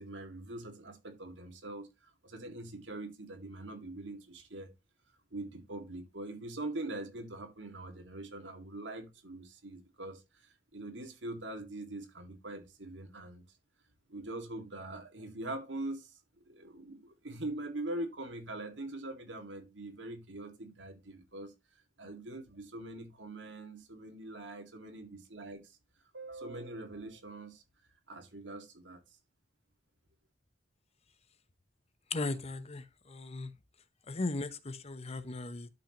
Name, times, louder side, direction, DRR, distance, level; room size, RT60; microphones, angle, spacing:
voice 1, 0.0-4.7 5.3-13.4 14.1-21.5 22.0-25.8 26.1-27.6 28.1-29.0, right 2 dB, 90° right, 2.1 m, -43 dB
voice 2, 32.1-33.5 34.1-35.7, left 2 dB, 35° left, 0.8 m, -37 dB
12.0 x 5.9 x 2.9 m
head